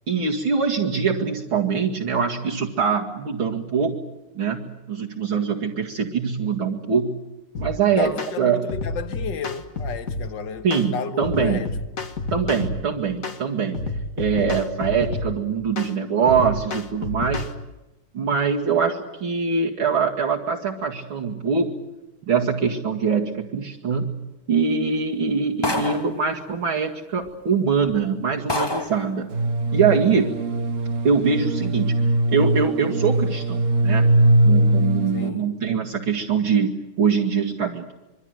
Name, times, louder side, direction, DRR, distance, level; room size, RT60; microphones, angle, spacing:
voice 1, 0.1-4.0 4.3-7.1 7.6-8.1 8.4-8.7 10.6-11.6 12.3-13.8 14.2-17.5 18.1-21.8 22.2-24.1 24.5-29.3 29.7-30.5 31.0-34.1 34.4-37.9, right 6 dB, 70° right, 3.0 m, -23 dB
sound 1, 7.5-7.8 8.2-8.4 8.7-10.3 10.7-10.9 11.2-12.8 13.2-13.4 13.7-15.3 15.8-15.9 16.3-17.5, left 2 dB, 40° left, 2.0 m, -29 dB
voice 2, 8.0-11.7 35.1-35.5, left 6 dB, 60° left, 1.9 m, -32 dB
sound 2, 25.6-26.2 27.2-27.3 27.9-28.0 28.5-29.0, left 1 dB, 10° left, 1.5 m, -26 dB
sound 3, 29.3-35.3, right 1 dB, 40° right, 1.5 m, -21 dB
26.0 x 23.5 x 8.0 m
omnidirectional pair, 2.4 m